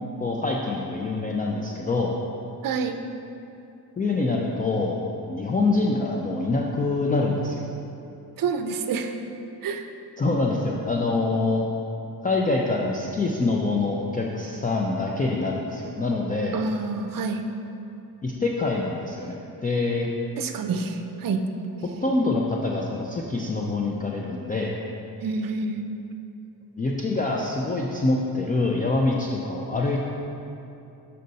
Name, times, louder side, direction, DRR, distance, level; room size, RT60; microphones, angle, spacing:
voice 1, 0.2-2.2 4.0-7.7 10.2-11.6 12.2-16.6 18.2-20.1 22.0-24.7 26.8-30.0, left 3 dB, 20° left, -2 dB, 0.4 m, -25 dB
voice 2, 2.6-3.0 8.4-9.1 9.6-9.9 16.5-17.4 20.4-21.4 25.2-25.8, right 4 dB, 60° right, 6 dB, 0.5 m, -27 dB
6.4 x 5.5 x 4.0 m, 2.8 s
wide cardioid pair, 135°, 39 cm